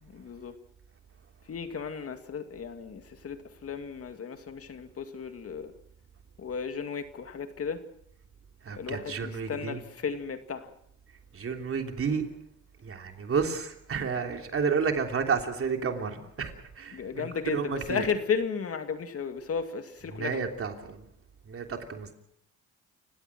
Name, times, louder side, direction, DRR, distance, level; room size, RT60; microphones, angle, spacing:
voice 1, 0.0-0.6 1.4-5.7 6.4-7.8 8.7-10.7 16.9-20.5, left 6 dB, 50° left, 2.2 m, -34 dB
voice 2, 8.6-9.8 11.3-12.3 12.8-18.0 20.0-21.0 21.5-22.1, right 5 dB, 45° right, 3.3 m, -31 dB
29.0 x 17.0 x 6.1 m
cardioid pair, 90°, 30 cm